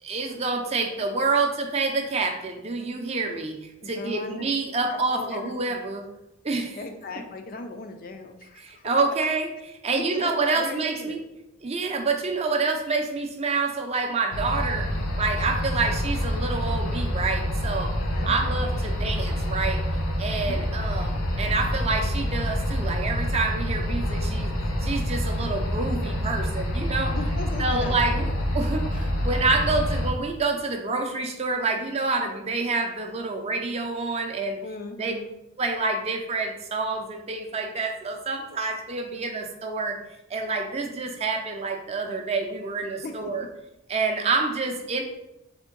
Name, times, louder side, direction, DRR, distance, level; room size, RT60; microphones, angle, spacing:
voice 1, 0.0-6.0 6.4-6.8 8.6-9.5 9.8-11.2 11.6-14.9 15.2-18.0 18.2-19.8 20.2-24.5 24.8-27.2 27.6-34.6 35.0-35.1 35.6-40.0 40.3-43.5 43.9-45.0, right 3 dB, 30° right, 4 dB, 0.4 m, -27 dB
voice 2, 3.8-4.4 4.9-5.5 6.7-8.8 9.9-11.2 18.1-18.7 20.4-20.6 27.1-28.4 34.6-35.3 43.0-43.4, left 3 dB, 40° left, 5 dB, 0.4 m, -38 dB
sound 1, 14.3-30.1, equal, 90° left, 1.0 m, -27 dB
3.6 x 3.5 x 3.8 m, 0.89 s
head